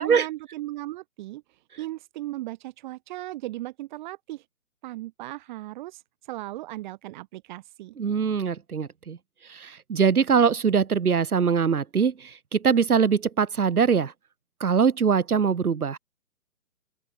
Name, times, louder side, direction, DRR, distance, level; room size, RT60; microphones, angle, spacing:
voice 1, 0.0-4.4 4.8-7.9, right 17 dB, 30° right, 3.0 m, -37 dB
voice 2, 8.0-9.2 9.5-14.1 14.6-16.0, right 6 dB, 80° right, 1.3 m, -22 dB
open air
figure-of-eight pair, 140°, 44 cm